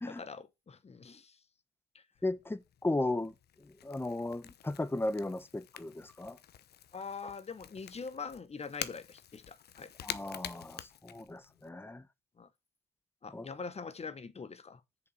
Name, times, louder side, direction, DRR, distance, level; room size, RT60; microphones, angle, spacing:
voice 1, 0.1-1.4 1.9-2.0 6.9-9.9 12.4-12.5 13.2-14.8, left 5 dB, 30° left, 1.1 m, -43 dB
Crackle / Crack, 2.1-11.7, left 10 dB, 55° left, 0.8 m, -47 dB
voice 2, 2.2-6.4 10.0-12.1 13.3-13.5, left 2 dB, 10° left, 1.1 m, -36 dB
6.8 x 5.2 x 6.4 m
hypercardioid pair, 60°, 20 cm